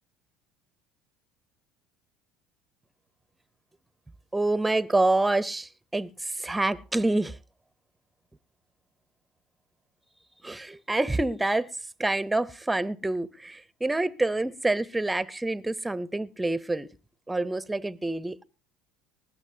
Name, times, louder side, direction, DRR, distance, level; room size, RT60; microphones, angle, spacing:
voice 1, 4.3-7.4 10.4-11.7 12.0-16.9 17.3-18.4, right 2 dB, 10° right, 0.6 m, -27 dB
20.0 x 15.5 x 2.7 m
supercardioid pair, 90°, 0 cm